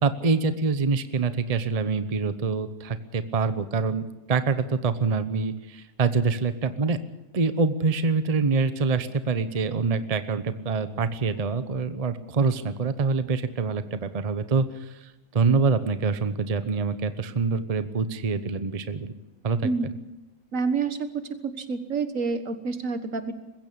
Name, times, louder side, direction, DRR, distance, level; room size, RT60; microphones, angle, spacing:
voice 1, 0.0-7.0 7.3-15.0 15.3-19.1 19.4-19.7, right 4 dB, 30° right, 11 dB, 0.9 m, -25 dB
voice 2, 20.5-21.0 21.4-23.3, right 4 dB, 70° right, 10 dB, 1.9 m, -28 dB
21.0 x 15.5 x 8.6 m, 1.0 s
omnidirectional pair, 1.4 m